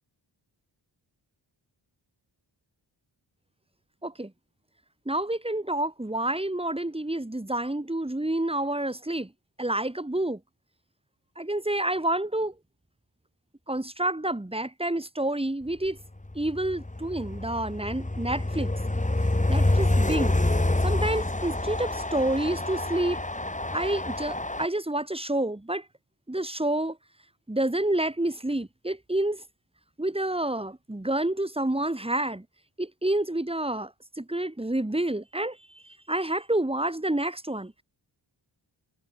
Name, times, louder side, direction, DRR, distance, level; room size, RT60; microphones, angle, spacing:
voice 1, 5.1-9.3 9.6-10.4 11.4-12.5 13.7-16.0 16.3-18.7 19.5-20.4 20.8-23.2 23.7-25.8 26.3-27.0 27.5-29.4 30.0-32.4 32.8-33.9 34.2-35.6 36.1-37.7, right 1 dB, 10° right, 4.7 m, -28 dB
Train, 16.2-24.7, left 2 dB, 15° left, 7.3 m, -27 dB
wide cardioid pair, 115°, 46 cm